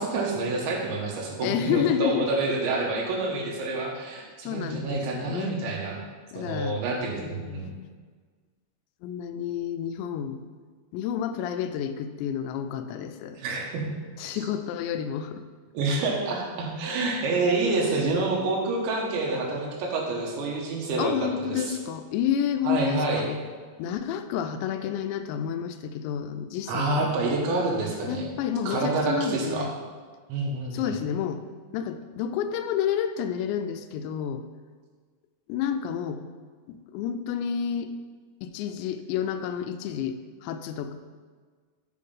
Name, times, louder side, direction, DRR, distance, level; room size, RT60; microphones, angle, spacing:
voice 1, 0.0-6.0 6.4-7.7 13.4-13.8 14.3-14.5 15.8-21.1 21.4-21.8 22.7-23.2 26.7-28.3 28.7-29.7 30.3-30.9, right 3 dB, 80° right, -1 dB, 3.6 m, -28 dB
voice 2, 1.4-2.3 4.4-5.6 6.3-6.8 7.2-7.8 9.0-10.4 10.9-13.4 14.2-15.4 21.0-23.4 23.8-27.1 28.0-29.7 30.7-31.4 31.7-34.4 35.5-36.2 36.7-37.9 38.4-40.9, left 8 dB, 85° left, 8 dB, 2.8 m, -30 dB
7.1 x 6.5 x 5.5 m, 1.5 s
omnidirectional pair, 5.1 m